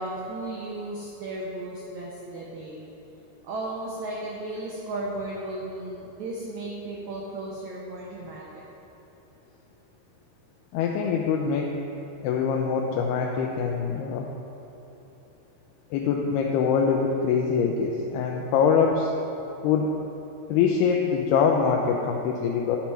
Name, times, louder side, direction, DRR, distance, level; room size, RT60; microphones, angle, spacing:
voice 1, 0.0-2.9 3.4-8.6, right 2 dB, 80° right, -4 dB, 1.6 m, -35 dB
voice 2, 10.7-11.7 12.2-14.3 15.9-19.1 19.6-19.9 20.5-22.8, left 6 dB, 90° left, 0 dB, 2.6 m, -24 dB
11.5 x 4.6 x 5.5 m, 3.0 s
omnidirectional pair, 4.5 m